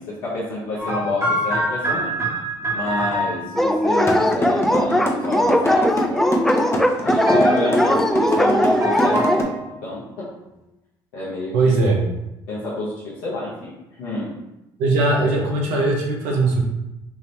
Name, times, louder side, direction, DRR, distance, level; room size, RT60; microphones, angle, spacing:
voice 1, 0.0-2.1 2.7-6.3 7.0-9.5 9.8-10.3 11.1-11.7 12.5-14.3, left 2 dB, 80° left, -9 dB, 0.9 m, -29 dB
sound 1, 0.8-3.7 5.4-5.8 7.3-7.9 8.8-9.6, right 1 dB, 20° right, 1.3 m, -24 dB
Dog, 3.6-9.4, left 1 dB, ahead, 0.3 m, -19 dB
sound 2, 4.1-9.4, equal, 20° left, 0.9 m, -23 dB
voice 2, 11.5-12.0 14.8-16.6, right 2 dB, 80° right, 0 dB, 0.7 m, -19 dB
3.7 x 2.6 x 3.2 m, 0.94 s
hypercardioid pair, 60°, 12 cm